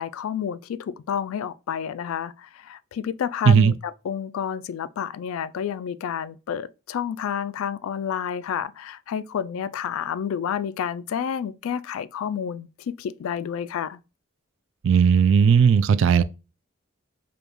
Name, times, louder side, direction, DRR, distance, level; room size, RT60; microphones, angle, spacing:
voice 1, 0.0-14.0, left 8 dB, 85° left, 0.3 m, -30 dB
voice 2, 14.8-16.2, right 6 dB, 60° right, 0.3 m, -16 dB
5.0 x 2.3 x 3.1 m
head